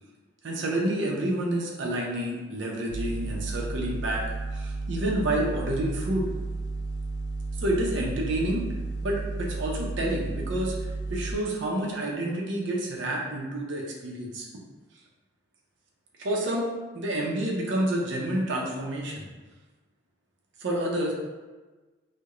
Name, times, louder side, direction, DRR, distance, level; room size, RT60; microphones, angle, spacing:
voice 1, 0.4-6.3 7.6-8.6 9.0-10.7 11.1-14.5 16.2-16.7 16.9-19.3 20.6-21.1, right 1 dB, 75° right, -2 dB, 0.5 m, -29 dB
sound 1, 2.9-11.4, right 3 dB, 65° left, 0.3 m, -33 dB
2.4 x 2.1 x 2.9 m, 1.3 s
head